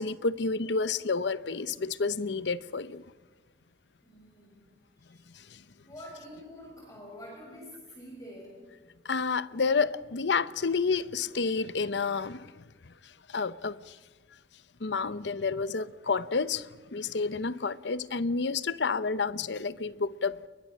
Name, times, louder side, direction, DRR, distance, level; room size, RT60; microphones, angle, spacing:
voice 1, 0.0-3.0 9.1-12.5 13.3-13.8 14.8-16.7 16.9-20.4, left 4 dB, 80° left, 0.8 m, -29 dB
voice 2, 4.0-4.7 5.0-5.6 5.9-8.6, equal, 20° left, 6.1 m, -47 dB
29.5 x 22.5 x 6.3 m
head